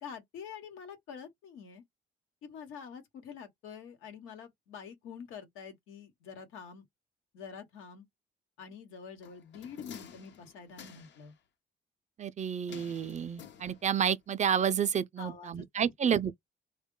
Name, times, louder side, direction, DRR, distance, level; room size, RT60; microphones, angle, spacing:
voice 1, 0.0-1.8 2.4-6.8 7.3-8.1 8.6-11.3 15.2-16.2, left 6 dB, 90° left, 1.1 m, -47 dB
sound 1, 9.2-11.3 12.7-14.1 14.4-14.5, left 8 dB, 65° left, 0.7 m, -51 dB
voice 2, 12.2-16.3, right 8 dB, 35° right, 0.4 m, -30 dB
3.4 x 2.2 x 3.7 m
cardioid pair, 90°, 20 cm